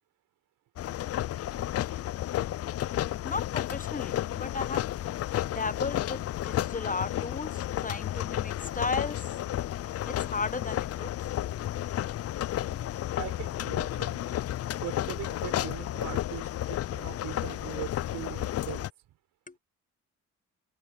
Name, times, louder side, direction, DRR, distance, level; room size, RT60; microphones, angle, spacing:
sound 1, 0.8-18.9, left 13 dB, 50° left, 0.5 m, -32 dB
voice 1, 3.2-4.9 5.5-9.2 10.1-11.3 12.7-12.8 19.5-19.6, left 4 dB, 25° left, 1.0 m, -35 dB
voice 2, 13.2-14.2 14.8-18.9, right 14 dB, 80° right, 4.9 m, -41 dB
open air
supercardioid pair, 60°, 33 cm